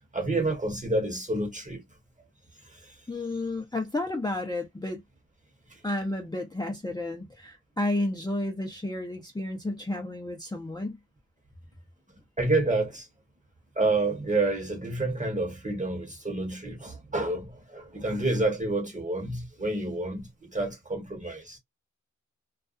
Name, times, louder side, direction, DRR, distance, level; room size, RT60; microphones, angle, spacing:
voice 1, 0.1-1.8 2.6-3.0 5.7-5.8 12.4-13.1 13.8-21.6, right 2 dB, 25° right, 1.0 m, -29 dB
voice 2, 3.1-5.0 5.8-11.0, left 2 dB, 15° left, 0.6 m, -31 dB
2.3 x 2.3 x 2.4 m
wide cardioid pair, 90°, 30 cm